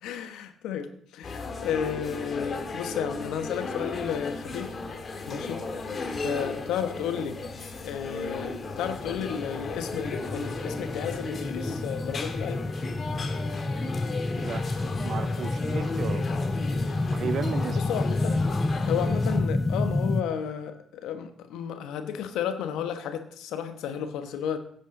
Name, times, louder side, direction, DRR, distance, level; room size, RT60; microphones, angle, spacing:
voice 1, 0.0-4.7 5.3-5.6 6.2-7.4 7.8-12.6 17.7-18.4 18.8-24.6, left 8 dB, 75° left, 1.2 m, -32 dB
sound 1, 1.2-19.4, left 3 dB, 45° left, 1.9 m, -35 dB
sound 2, 8.3-20.2, left 2 dB, 20° left, 0.7 m, -29 dB
Organ, 10.1-21.1, left 2 dB, ahead, 2.5 m, -53 dB
voice 2, 14.4-16.3 17.1-17.9, right 7 dB, 60° right, 0.6 m, -35 dB
16.0 x 8.3 x 3.8 m
hypercardioid pair, 50°, 0 cm